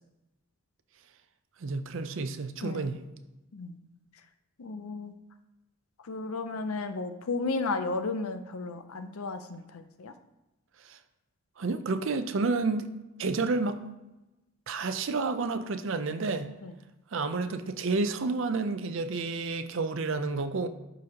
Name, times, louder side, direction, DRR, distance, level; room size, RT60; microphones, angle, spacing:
voice 1, 1.6-3.0 10.9-11.0 11.6-12.9 13.2-13.8 14.7-16.5 17.1-20.7, right 3 dB, 60° right, 9 dB, 0.5 m, -30 dB
voice 2, 4.6-5.2 6.0-10.1 16.6-16.7, left 3 dB, 75° left, 9 dB, 0.6 m, -34 dB
11.5 x 4.0 x 2.9 m, 1.0 s
head